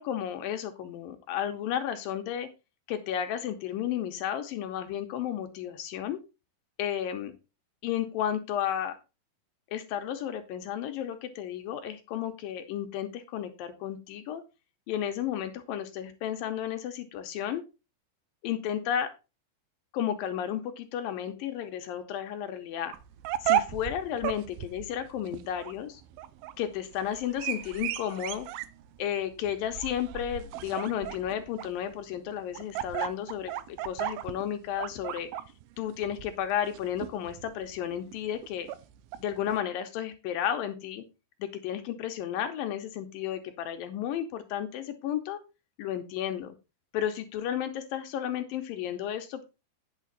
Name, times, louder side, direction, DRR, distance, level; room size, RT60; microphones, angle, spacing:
voice 1, 0.0-2.5 2.9-6.2 6.8-7.3 7.8-9.0 9.7-14.4 14.9-17.6 18.4-19.1 19.9-23.0 23.4-26.0 26.6-28.5 29.0-35.3 35.8-38.7 39.2-41.0 41.4-45.4 45.8-46.6 46.9-49.4, left 10 dB, 75° left, 7 dB, 2.2 m, -33 dB
sound 1, 22.9-39.6, right 12 dB, 80° right, 2.4 m, -35 dB
9.3 x 6.5 x 3.9 m, 0.29 s
omnidirectional pair, 4.6 m